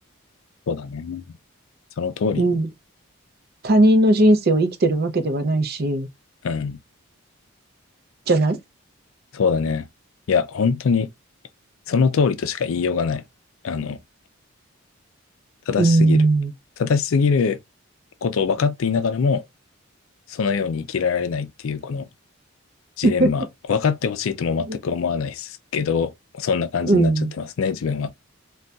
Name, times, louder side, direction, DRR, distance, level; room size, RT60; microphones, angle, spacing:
voice 1, 0.7-1.2 2.0-2.4 6.4-6.8 9.3-9.9 10.3-11.1 11.9-13.2 13.6-14.0 15.7-16.2 16.8-17.6 18.2-19.4 20.3-22.1 23.0-28.1, left 5 dB, 70° left, 0.4 m, -23 dB
voice 2, 2.4-2.7 3.6-6.1 8.3-8.6 15.8-16.5 23.0-23.3 24.7-24.8 26.8-27.3, right 2 dB, 45° right, 0.5 m, -18 dB
3.9 x 2.3 x 2.2 m
head